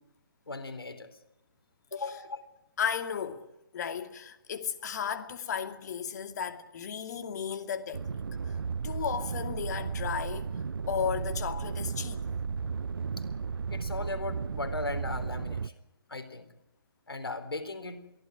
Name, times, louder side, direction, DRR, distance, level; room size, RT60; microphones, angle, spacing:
voice 1, 0.5-1.1 1.9-2.4 13.7-15.7 16.1-16.5 17.1-18.0, left 2 dB, 75° left, 4.0 m, -37 dB
voice 2, 1.9-2.2 2.8-3.5 3.7-8.2 8.5-8.6 8.8-10.5 10.9-12.3, left 7 dB, 45° left, 2.4 m, -34 dB
sound 1, 7.9-15.7, right 5 dB, 65° right, 0.7 m, -34 dB
23.0 x 16.0 x 9.9 m
figure-of-eight pair, 135°, 13 cm